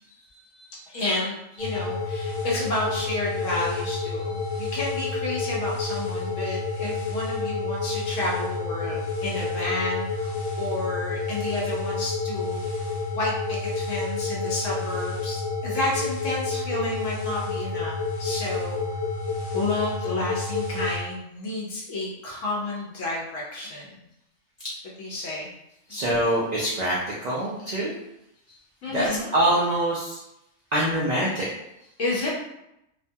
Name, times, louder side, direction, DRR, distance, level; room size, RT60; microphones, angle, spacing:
voice 1, 0.3-1.0 4.2-4.6 24.6-24.7 25.2-25.3 25.9-27.9 28.9-30.2 30.7-31.5, right 1 dB, 55° right, -6 dB, 0.4 m, -25 dB
voice 2, 0.9-12.6 13.1-19.0 19.5-24.0 25.0-25.5 28.8-29.3 32.0-32.3, left 2 dB, 75° left, -4 dB, 1.0 m, -31 dB
sound 1, 1.6-21.0, left 3 dB, 45° left, 0.8 m, -29 dB
2.6 x 2.2 x 2.6 m, 0.84 s
omnidirectional pair, 1.3 m